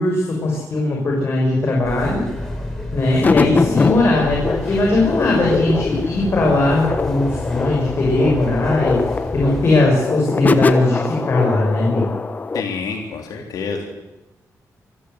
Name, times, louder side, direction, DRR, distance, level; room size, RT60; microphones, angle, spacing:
voice 1, 0.0-2.2 2.9-9.0 9.3-12.1, left 2 dB, 45° left, -2 dB, 6.5 m, -19 dB
sound 1, 1.8-9.7, left 1 dB, 10° left, 5.4 m, -30 dB
sound 2, 3.2-12.6, left 4 dB, 30° left, 1.2 m, -22 dB
voice 2, 12.5-13.9, left 5 dB, 90° left, 2 dB, 3.7 m, -27 dB
26.5 x 16.0 x 8.2 m, 1.0 s
wide cardioid pair, 150°, 6 cm